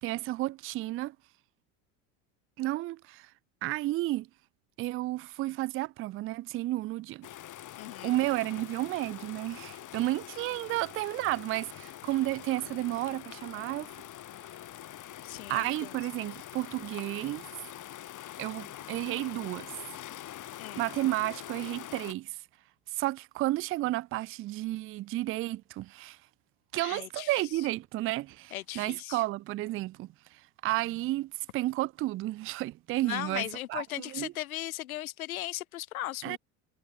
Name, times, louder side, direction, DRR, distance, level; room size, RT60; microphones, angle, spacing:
voice 1, 0.0-1.2 2.6-3.3 3.6-4.3 4.8-7.3 8.0-13.9 15.5-17.5 18.4-19.7 20.8-22.4 22.9-26.2 26.7-30.1 30.6-34.3 36.2-36.4, right 17 dB, 35° right, 0.4 m, -32 dB
sound 1, 7.2-22.1, left 12 dB, 45° left, 8.0 m, -45 dB
voice 2, 7.8-8.2 15.2-15.9 20.6-20.9 26.8-27.4 28.5-29.2 33.0-36.4, left 14 dB, 90° left, 4.1 m, -38 dB
supercardioid pair, 95°, 41 cm